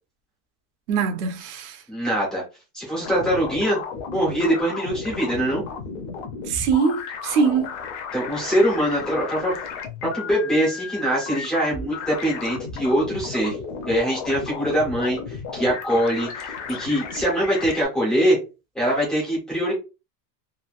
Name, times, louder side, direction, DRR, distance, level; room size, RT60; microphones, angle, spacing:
voice 1, 0.9-1.8 6.4-7.7, right 5 dB, 75° right, 0.9 m, -23 dB
voice 2, 1.9-2.4 2.7-3.8 4.1-5.6 8.1-9.5 10.1-13.6 13.9-16.3 16.7-18.4 18.7-19.7, equal, ahead, 0.3 m, -23 dB
sound 1, 3.0-17.9, left 5 dB, 45° left, 0.6 m, -34 dB
3.2 x 2.4 x 2.3 m
cardioid pair, 180°, 47 cm